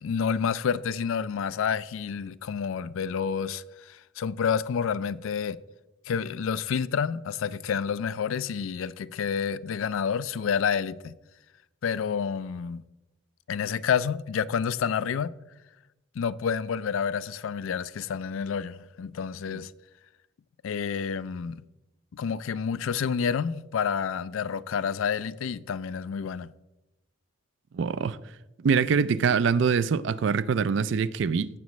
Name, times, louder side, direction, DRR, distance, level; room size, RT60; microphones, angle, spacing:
voice 1, 0.0-5.6 6.1-11.1 11.8-12.8 13.5-15.3 16.2-19.7 20.6-21.6 22.1-26.5, left 7 dB, 80° left, 0.4 m, -29 dB
voice 2, 27.7-28.2 28.6-31.5, right 6 dB, 65° right, 0.4 m, -24 dB
16.0 x 7.1 x 3.1 m
head